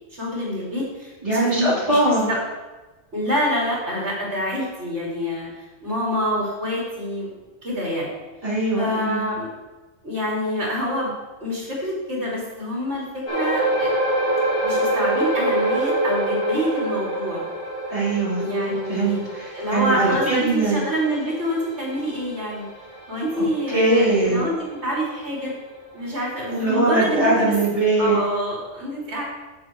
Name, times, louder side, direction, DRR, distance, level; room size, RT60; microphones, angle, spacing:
voice 1, 0.1-2.4 3.1-5.5 5.8-7.3 7.6-8.1 8.8-9.5 10.0-11.1 11.4-13.9 14.6-17.4 18.4-19.2 19.6-22.7 23.1-25.5 25.9-27.5 28.0-29.2, equal, 65° right, -5 dB, 3.8 m, -26 dB
voice 2, 1.2-2.3 8.4-9.3 17.9-18.5 18.9-20.8 23.7-24.5 26.5-28.2, right 2 dB, 30° right, -7 dB, 3.7 m, -21 dB
sound 1, 13.3-26.0 26.3-26.5 27.0-27.1, right 1 dB, 55° left, 3.3 m, -27 dB
9.7 x 7.9 x 4.7 m, 1.2 s
omnidirectional pair, 1.2 m